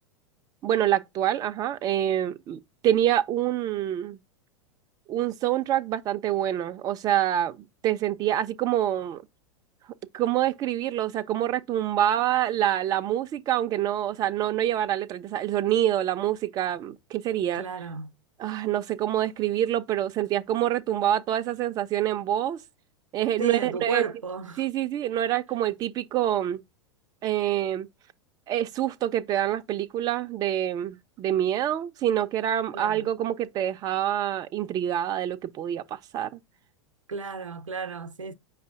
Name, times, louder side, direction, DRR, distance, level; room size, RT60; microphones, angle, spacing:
voice 1, 0.6-4.2 5.1-9.2 10.1-17.6 18.4-22.6 23.1-24.1 24.6-26.6 27.2-27.9 28.5-36.4, right 11 dB, 25° right, 0.3 m, -26 dB
voice 2, 17.6-18.1 23.4-24.6 32.7-33.1 37.1-38.3, right 4 dB, 85° right, 0.5 m, -33 dB
5.4 x 2.5 x 3.6 m
figure-of-eight pair, 90°, 16 cm